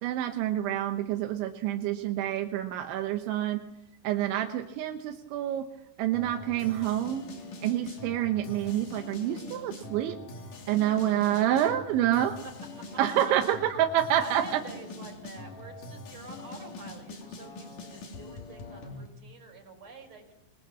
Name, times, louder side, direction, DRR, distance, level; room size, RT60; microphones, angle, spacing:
voice 1, 0.0-3.6 4.0-5.7 6.0-7.3 7.6-10.2 10.7-12.4 13.0-14.4, right 11 dB, 80° right, 5 dB, 3.4 m, -27 dB
voice 2, 3.0-3.4 10.7-10.8 12.4-12.5 14.2-20.3, right 2 dB, 35° right, 4 dB, 6.0 m, -47 dB
sound 1, 6.1-19.1, left 2 dB, 45° left, 4.1 m, -43 dB
22.5 x 22.5 x 7.5 m, 0.88 s
omnidirectional pair, 5.3 m